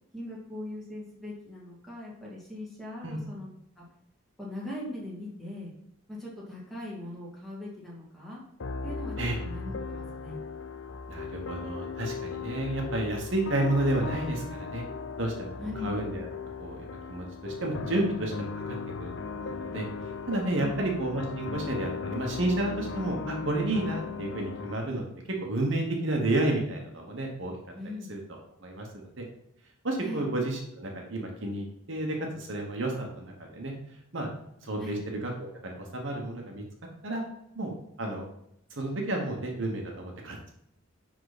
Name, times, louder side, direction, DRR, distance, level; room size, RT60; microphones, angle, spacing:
voice 1, 0.1-3.5 3.8-3.9 4.4-5.7 6.1-8.4 8.8-10.4 15.6-15.9 20.6-20.9 27.7-28.1 30.0-30.3 34.8-35.0, left 1 dB, ahead, -6 dB, 2.2 m, -40 dB
sound 1, 8.6-24.8, left 5 dB, 60° left, 0.6 m, -37 dB
voice 2, 11.1-14.8 15.2-15.5 15.8-16.3 16.6-25.0 25.4-27.5 28.1-28.2 28.6-29.2 29.8-33.7 34.1-34.3 34.6-36.6 37.0-37.2 37.5-37.7 38.0-38.2 38.7-40.5, right 2 dB, 60° right, 1 dB, 1.3 m, -31 dB
10.0 x 3.9 x 4.1 m, 0.77 s
head